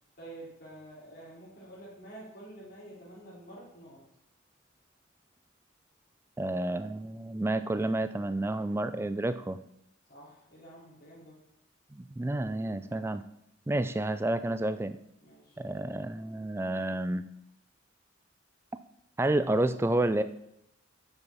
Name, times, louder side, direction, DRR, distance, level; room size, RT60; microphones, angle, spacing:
voice 1, 0.2-4.0 10.1-11.4 15.2-15.6, right 1 dB, 50° left, -6 dB, 2.8 m, -49 dB
voice 2, 6.4-9.6 11.9-13.2 13.7-15.0 15.6-17.2 19.2-20.2, right 1 dB, 15° right, 12 dB, 0.3 m, -30 dB
9.1 x 5.8 x 4.1 m, 0.78 s
head